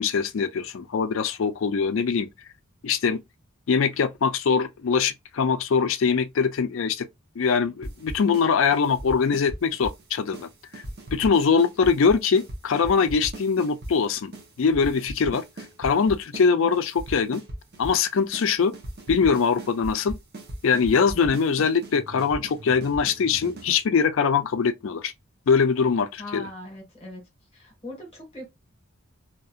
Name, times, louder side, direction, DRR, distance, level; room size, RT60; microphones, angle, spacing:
voice 1, 0.0-2.3 2.8-3.2 3.7-7.1 7.4-10.5 11.1-14.3 14.6-15.4 15.8-17.4 17.8-18.7 19.1-20.2 20.6-25.1 25.5-26.5, left 5 dB, 65° left, 0.4 m, -22 dB
sound 1, 7.8-8.5 8.7-10.0 10.3-10.5 10.7-13.9 14.3-14.4 14.7-16.5 16.7-18.0 18.3-18.5 18.7-23.8, right 1 dB, 50° right, 0.9 m, -37 dB
voice 2, 26.2-27.2 27.5-28.5, left 1 dB, 30° left, 1.4 m, -40 dB
2.8 x 2.7 x 2.4 m
head